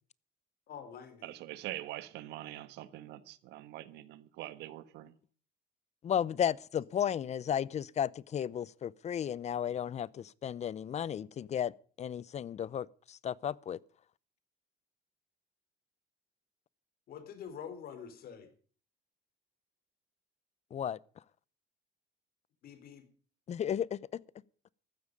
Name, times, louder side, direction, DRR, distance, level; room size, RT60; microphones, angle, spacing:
voice 1, 0.7-1.4 17.1-18.5 22.6-23.1, left 7 dB, 65° left, 4.0 m, -46 dB
voice 2, 1.2-5.1, right 14 dB, 90° right, 1.4 m, -44 dB
voice 3, 6.0-11.7 12.0-13.8 20.7-21.0 23.5-24.0, left 9 dB, 40° left, 0.6 m, -34 dB
15.0 x 13.0 x 5.3 m
cardioid pair, 110°, 17 cm